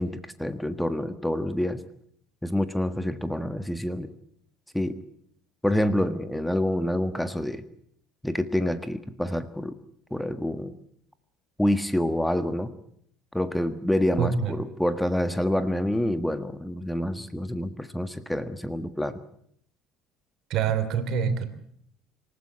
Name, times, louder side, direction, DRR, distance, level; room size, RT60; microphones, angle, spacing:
voice 1, 0.0-1.8 2.4-4.1 4.7-5.0 5.6-7.6 8.2-9.8 10.1-10.7 11.6-12.7 13.3-19.2, left 1 dB, 5° left, 11 dB, 1.5 m, -27 dB
voice 2, 14.2-14.5 20.5-21.5, right 7 dB, 55° right, 11 dB, 3.1 m, -25 dB
27.0 x 14.5 x 8.7 m, 0.67 s
figure-of-eight pair, 60°, 0 cm